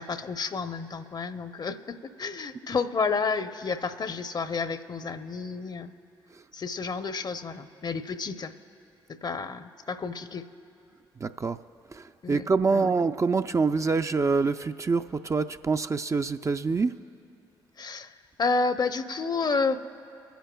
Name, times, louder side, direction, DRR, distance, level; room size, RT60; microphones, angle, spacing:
voice 1, 0.0-5.9 6.5-8.5 9.2-10.5 12.2-12.8 17.8-18.1 18.4-19.8, left 4 dB, 40° left, 11 dB, 0.7 m, -30 dB
voice 2, 11.2-11.6 11.9-16.9, right 4 dB, 25° right, 8 dB, 0.4 m, -26 dB
22.0 x 10.5 x 2.3 m, 2.6 s
hypercardioid pair, 40°, 11 cm